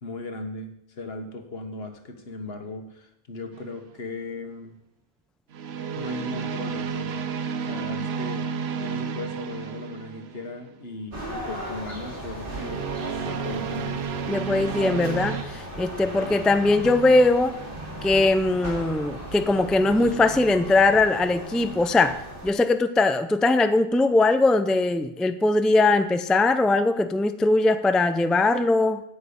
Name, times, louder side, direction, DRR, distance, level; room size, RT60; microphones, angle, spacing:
voice 1, 0.0-4.8 5.9-7.2 7.7-8.5 8.8-12.9 13.2-14.1 16.2-16.4, left 2 dB, 75° left, 6 dB, 1.6 m, -37 dB
sound 1, 3.5-3.9 5.5-10.6 12.4-15.4, right 6 dB, 85° right, 1.1 m, -31 dB
sound 2, 11.1-22.5, right 1 dB, 60° right, 2.7 m, -37 dB
voice 2, 14.3-17.6 18.0-29.0, left 2 dB, ahead, 10 dB, 0.4 m, -21 dB
9.3 x 8.5 x 8.6 m, 0.85 s
omnidirectional pair, 1.0 m